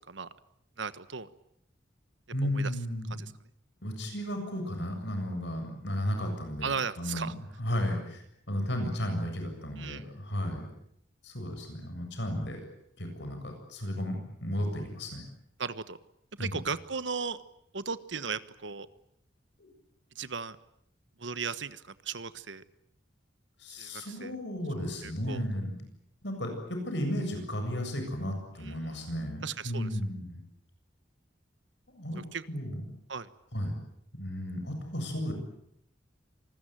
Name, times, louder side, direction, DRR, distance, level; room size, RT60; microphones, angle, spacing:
voice 1, 0.8-1.3 2.4-2.7 3.1-3.3 6.6-7.3 9.8-10.1 15.6-16.0 16.4-17.4 17.7-18.9 20.1-20.6 21.2-22.6 23.8-24.3 25.0-25.4 28.6-29.1 29.4-30.0 32.2-32.4 33.1-33.3, right 5 dB, 75° right, 14 dB, 1.3 m, -36 dB
voice 2, 2.3-3.1 3.8-7.3 7.6-8.2 8.5-10.7 11.2-12.6 13.0-15.2 16.4-16.6 19.6-19.7 23.6-25.7 26.2-30.4 32.0-32.2 32.5-32.8 33.5-33.7 34.1-35.3, equal, 65° left, 5 dB, 7.6 m, -34 dB
26.5 x 20.5 x 9.2 m, 0.73 s
head